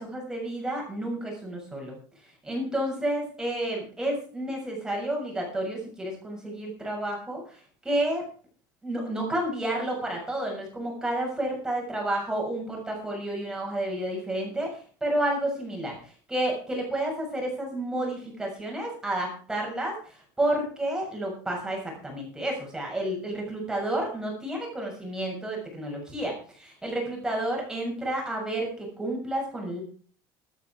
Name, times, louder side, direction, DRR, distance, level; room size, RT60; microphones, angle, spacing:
voice 1, 0.0-2.0 2.4-8.3 8.8-16.0 16.3-29.8, right 1 dB, 5° right, 0 dB, 6.8 m, -30 dB
14.5 x 13.0 x 4.7 m, 0.43 s
cardioid pair, 165°, 10 cm